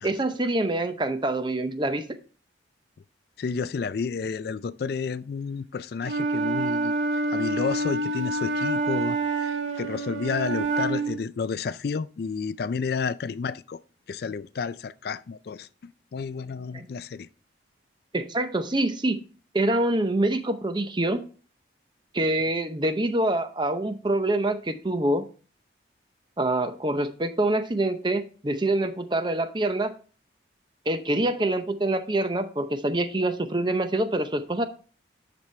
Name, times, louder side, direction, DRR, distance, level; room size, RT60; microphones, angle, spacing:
voice 1, 0.0-2.0 16.7-16.9 18.1-19.2 19.5-21.2 22.1-25.2 26.4-29.9 30.9-34.6, right 1 dB, 25° right, 0.6 m, -25 dB
voice 2, 3.4-6.9 7.3-13.8 14.1-17.3, left 5 dB, 55° left, 0.3 m, -31 dB
Wind instrument woodwind instrument, 6.0-11.2, right 2 dB, 85° right, 1.4 m, -27 dB
10.5 x 6.1 x 3.2 m
head